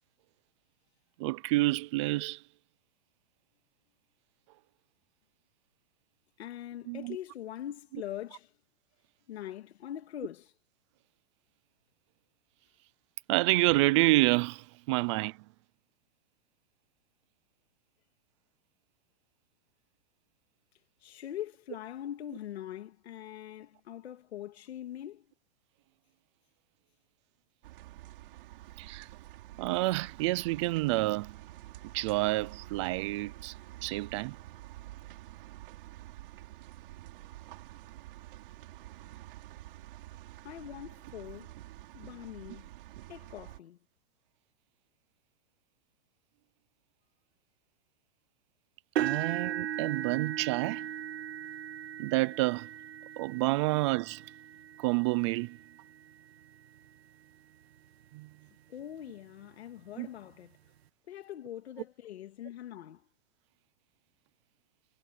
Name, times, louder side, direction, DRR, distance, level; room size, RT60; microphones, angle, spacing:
voice 1, 1.2-2.4 6.9-7.2 13.3-15.4 28.8-29.1 29.6-31.4 31.9-33.6 33.8-34.4 49.0-50.9 52.0-52.7 53.2-54.2 54.8-55.6 58.1-58.3 60.0-60.1, right 20 dB, 30° right, 0.5 m, -28 dB
voice 2, 6.4-8.5 9.3-10.5 21.0-25.2 40.4-41.5 41.9-42.7 43.1-43.8 58.7-60.6 61.1-63.0, left 11 dB, 85° left, 2.4 m, -42 dB
sound 1, 27.6-43.6, right 16 dB, 55° right, 6.7 m, -48 dB
sound 2, 49.0-57.0 57.6-57.9 58.3-58.4 59.8-59.9, right 11 dB, 75° right, 1.7 m, -38 dB
supercardioid pair, 160°, 32 cm